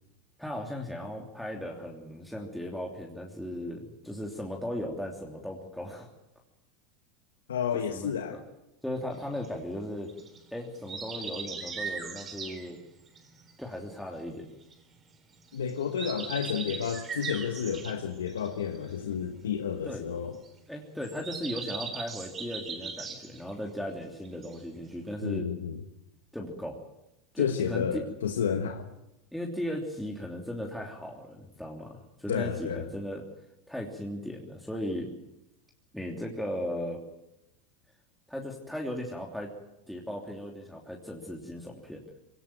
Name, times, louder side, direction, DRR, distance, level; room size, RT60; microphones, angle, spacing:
voice 1, 0.4-6.1 7.9-8.4 8.8-10.1 10.5-12.8 13.6-14.5 19.8-20.0 20.7-25.5 26.3-26.8 27.3-28.0 29.3-33.2 33.7-35.1 35.9-37.0 38.3-39.5 39.9-42.0, left 1 dB, ahead, -1 dB, 3.1 m, -37 dB
voice 2, 7.5-8.4 15.5-20.4 25.2-25.8 27.4-28.9 32.3-32.9, left 7 dB, 90° left, 6 dB, 1.3 m, -31 dB
sound 1, 9.1-15.0 15.3-24.0 24.2-25.1, right 5 dB, 30° right, 3.7 m, -40 dB
22.0 x 18.0 x 8.9 m, 0.91 s
hypercardioid pair, 95°, 0 cm